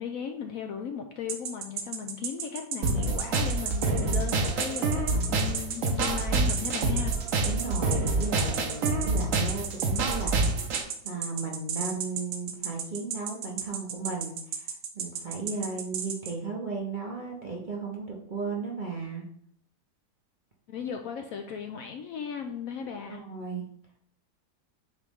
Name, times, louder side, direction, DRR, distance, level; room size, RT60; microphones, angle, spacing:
voice 1, 0.0-7.1 20.7-23.2, left 7 dB, 70° left, 4 dB, 0.9 m, -36 dB
sound 1, 1.3-16.3, right 7 dB, 80° right, 1.3 m, -34 dB
sound 2, 2.8-10.8, right 3 dB, 55° right, 1.1 m, -27 dB
voice 2, 7.4-10.8 11.0-19.3 23.1-23.7, right 4 dB, 40° right, -2 dB, 0.7 m, -35 dB
9.1 x 3.1 x 3.6 m, 0.65 s
omnidirectional pair, 1.8 m